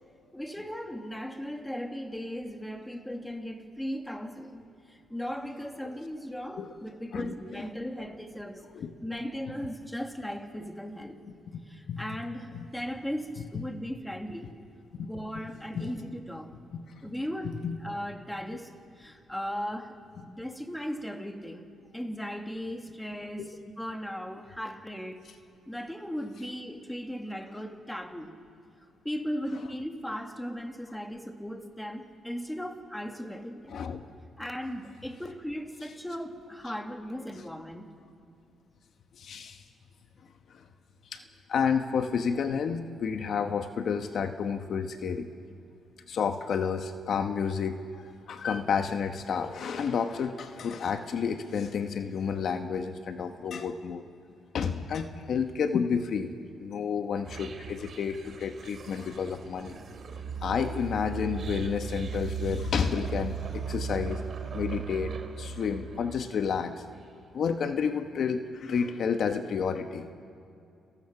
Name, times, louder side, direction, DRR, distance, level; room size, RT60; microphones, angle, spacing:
voice 1, 0.3-8.7 9.0-11.2 11.7-14.5 15.0-16.5 17.0-20.0 20.2-21.7 21.9-25.2 25.7-28.3 29.0-33.8 34.4-37.9, equal, 5° left, 5 dB, 2.0 m, -37 dB
voice 2, 33.7-34.0 39.2-39.6 41.1-41.2 41.5-45.3 46.1-54.0 54.5-56.3 56.6-59.8 60.4-64.2 64.5-66.8 67.3-70.1, left 6 dB, 60° left, 7 dB, 1.1 m, -30 dB
sound 1, 57.2-66.5, right 5 dB, 50° right, 2.7 m, -37 dB
30.0 x 14.5 x 6.0 m, 2.6 s
cardioid pair, 90°, 0 cm